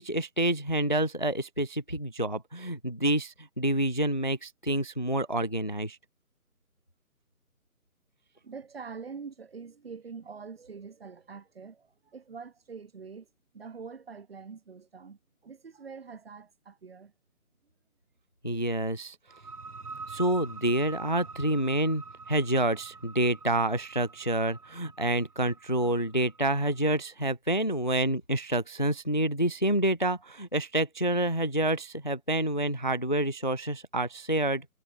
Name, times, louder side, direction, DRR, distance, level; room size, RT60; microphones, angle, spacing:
voice 1, 0.0-6.0 18.4-19.2 20.1-34.7, right 1 dB, 30° left, 0.6 m, -28 dB
voice 2, 8.4-13.3 13.5-17.1, right 5 dB, 40° right, 7.5 m, -45 dB
sound 1, 19.3-26.8, right 4 dB, 80° right, 3.3 m, -46 dB
figure-of-eight pair, 170°, 45 cm